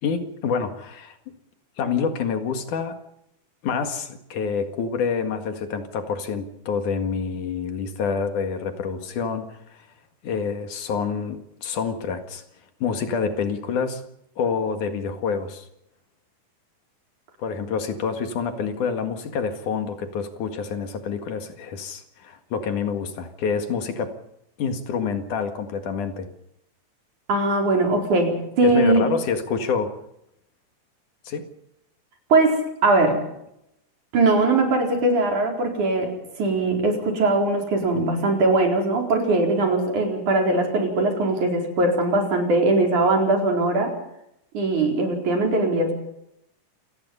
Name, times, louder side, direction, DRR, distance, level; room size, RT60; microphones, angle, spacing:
voice 1, 0.0-1.2 1.8-3.0 3.6-9.9 10.2-12.4 12.8-14.0 14.4-15.7 17.4-24.2 24.6-26.3 28.6-30.0 31.2-31.5, left 6 dB, 70° left, 7 dB, 3.4 m, -27 dB
voice 2, 27.3-29.0 32.3-33.2 34.1-43.9 44.5-45.9, right 2 dB, 65° right, 2 dB, 5.9 m, -21 dB
27.5 x 19.0 x 5.5 m, 0.80 s
omnidirectional pair, 3.7 m